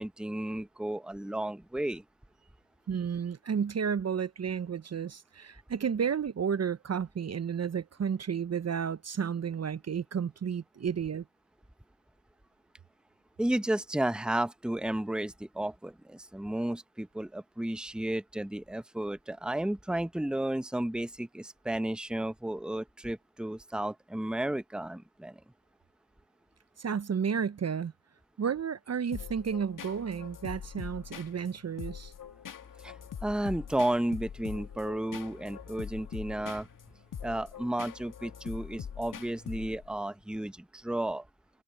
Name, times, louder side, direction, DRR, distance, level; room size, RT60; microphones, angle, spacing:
voice 1, 0.0-2.0 13.4-25.4 32.8-36.7 37.2-41.3, right 1 dB, ahead, 1.1 m, -33 dB
voice 2, 2.9-11.2 26.8-27.9 28.4-32.1, right 7 dB, 40° right, 1.0 m, -32 dB
sound 1, 29.1-40.0, left 8 dB, 55° left, 2.1 m, -43 dB
hypercardioid pair, 45°, 37 cm